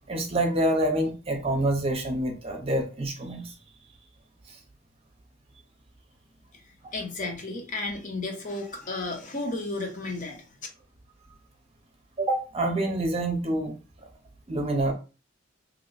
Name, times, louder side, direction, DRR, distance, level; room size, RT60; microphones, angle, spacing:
voice 1, 0.1-3.5 4.5-4.6 12.2-13.7 14.5-14.9, right 1 dB, 30° right, 0.7 m, -27 dB
voice 2, 6.9-10.5, left 2 dB, 45° left, 0.8 m, -33 dB
2.9 x 2.1 x 3.9 m
head